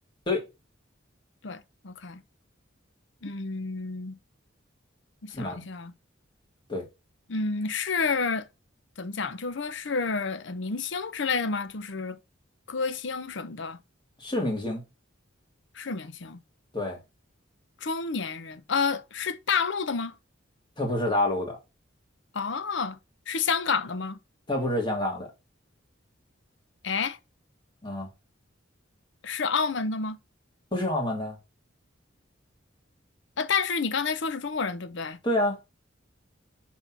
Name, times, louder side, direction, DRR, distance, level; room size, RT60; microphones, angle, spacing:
voice 1, 1.4-2.2 3.2-4.2 5.2-5.9 7.3-8.5 9.0-12.2 12.7-13.8 15.7-16.4 17.8-20.1 22.3-23.0 23.3-24.2 26.8-27.2 29.2-30.2 33.4-35.2, left 5 dB, 65° left, 0.7 m, -29 dB
voice 2, 14.2-14.8 16.7-17.0 20.8-21.6 24.5-25.3 27.8-28.1 30.7-31.4 35.2-35.6, left 1 dB, 25° left, 2.4 m, -27 dB
5.8 x 4.3 x 6.0 m
head